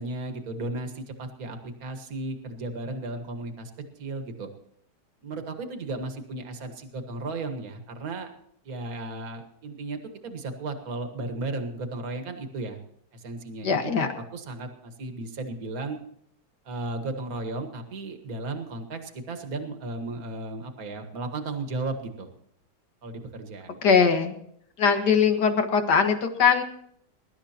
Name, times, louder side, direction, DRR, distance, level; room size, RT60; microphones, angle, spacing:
voice 1, 0.0-3.7 4.0-4.5 5.2-8.3 8.6-12.8 13.1-16.0 16.7-22.3 23.0-23.8, right 2 dB, 55° right, 6 dB, 2.0 m, -35 dB
voice 2, 13.6-14.1 23.8-24.3 24.8-26.6, left 6 dB, 70° left, 6 dB, 2.2 m, -21 dB
23.0 x 12.0 x 2.9 m, 0.67 s
omnidirectional pair, 1.9 m